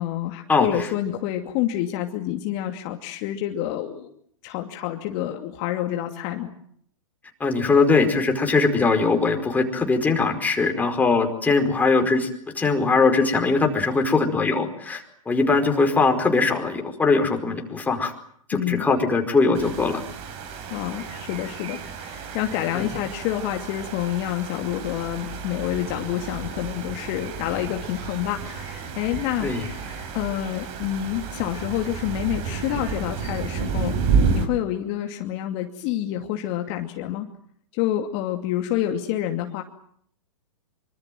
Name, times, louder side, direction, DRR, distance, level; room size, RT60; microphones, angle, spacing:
voice 1, 0.0-4.1 4.4-6.5 18.5-18.9 20.7-34.0 34.3-37.3 37.7-39.6, left 12 dB, 40° left, 4 dB, 2.6 m, -28 dB
voice 2, 7.4-12.3 12.5-18.1 18.5-20.0 22.7-23.0 29.4-29.6, left 4 dB, 10° left, 3 dB, 4.9 m, -21 dB
sound 1, 19.5-34.5, right 5 dB, 35° right, 5.0 m, -30 dB
26.0 x 25.0 x 7.7 m, 0.65 s
hypercardioid pair, 120°, 18 cm